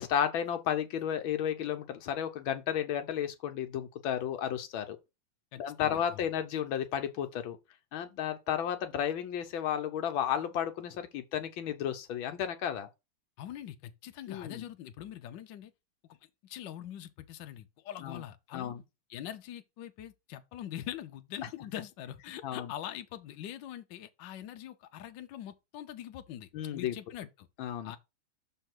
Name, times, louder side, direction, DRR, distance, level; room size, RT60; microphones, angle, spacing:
voice 1, 0.0-5.0 5.6-7.6 7.9-12.9 14.3-14.6 18.0-18.2 18.5-18.8 22.4-22.7 26.5-26.9 27.6-27.9, left 9 dB, 85° left, 1.6 m, -33 dB
voice 2, 5.5-6.3 13.4-15.7 16.1-16.2 16.4-18.7 19.1-27.5 27.8-28.0, left 11 dB, 70° left, 1.3 m, -43 dB
6.4 x 3.3 x 6.0 m
omnidirectional pair, 2.2 m